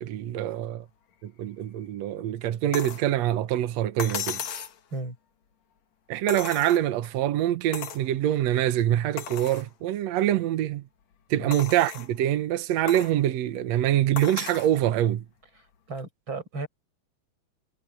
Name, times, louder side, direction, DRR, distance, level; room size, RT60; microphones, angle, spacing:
voice 1, 0.0-0.8 1.2-4.4 6.1-10.8 11.3-15.2, right 12 dB, 90° right, 1.5 m, -25 dB
sound 1, 2.7-3.1 4.0-4.8 6.3-7.1 7.7-8.1 8.6-8.7 9.2-9.7 10.3-10.4 11.5-12.1 12.9-13.2 14.2-14.7 16.0-16.1, left 8 dB, 50° left, 2.7 m, -35 dB
voice 2, 15.9-16.7, right 3 dB, 30° right, 8.8 m, -34 dB
omnidirectional pair, 4.6 m